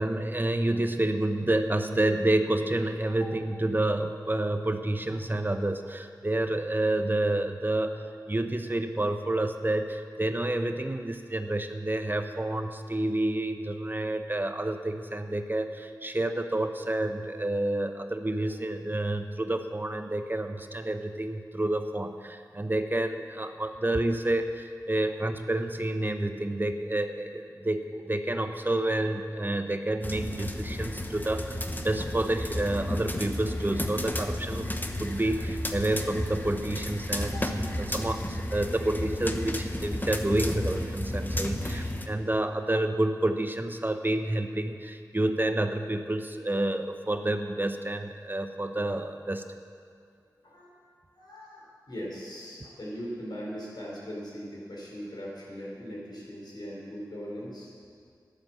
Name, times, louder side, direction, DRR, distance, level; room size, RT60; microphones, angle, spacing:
voice 1, 0.0-49.5, right 1 dB, 25° right, 7 dB, 0.8 m, -29 dB
sound 1, 30.0-42.1, left 1 dB, 25° left, 1.1 m, -32 dB
voice 2, 51.1-57.7, equal, 70° left, -4 dB, 4.6 m, -40 dB
12.0 x 10.5 x 7.5 m, 2.2 s
cardioid pair, 40°, 8 cm